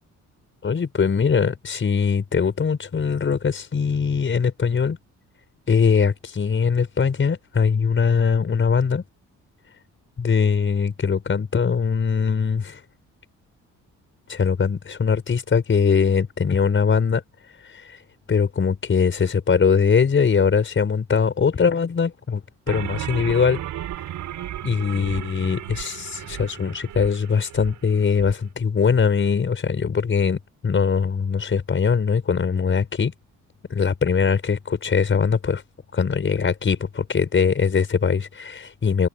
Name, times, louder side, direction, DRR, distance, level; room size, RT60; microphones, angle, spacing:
voice 1, 0.6-5.0 5.7-9.0 10.2-12.8 14.3-17.2 17.6-18.0 18.3-22.4 22.7-23.6 24.6-33.1 33.7-35.6 35.9-39.1, left 6 dB, 40° left, 5.9 m, -21 dB
sound 1, 22.7-28.4, right 12 dB, 80° right, 7.0 m, -34 dB
cardioid pair, 90°, 30 cm